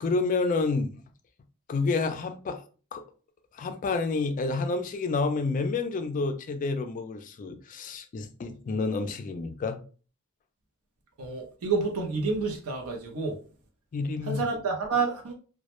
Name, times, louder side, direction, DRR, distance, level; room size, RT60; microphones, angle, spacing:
voice 1, 0.0-1.0 1.7-2.6 2.9-3.0 3.5-9.8 13.9-14.4, left 3 dB, 40° left, 0.3 m, -29 dB
voice 2, 11.2-13.4 14.2-15.3, right 4 dB, 85° right, 0.6 m, -29 dB
2.1 x 2.0 x 2.9 m
head